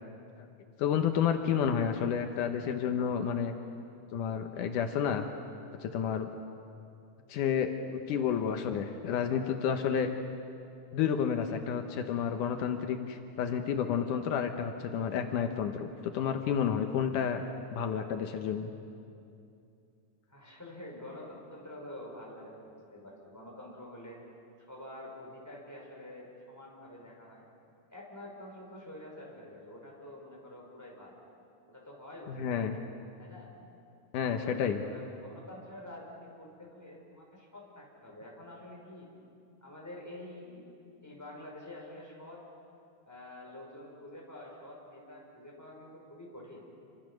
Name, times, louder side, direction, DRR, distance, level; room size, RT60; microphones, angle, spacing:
voice 1, 0.8-3.5 4.1-5.3 5.8-6.3 7.3-10.1 10.9-17.4 17.7-18.7 32.3-32.7 34.1-34.8, left 7 dB, 80° left, 6 dB, 2.5 m, -30 dB
voice 2, 20.3-24.2 24.7-27.4 27.9-31.1 31.7-32.5 33.2-33.5 34.2-39.1 39.6-40.7 41.0-42.4 43.0-46.6, left 1 dB, 5° left, -3 dB, 5.1 m, -47 dB
29.0 x 25.0 x 6.4 m, 2.6 s
omnidirectional pair, 3.6 m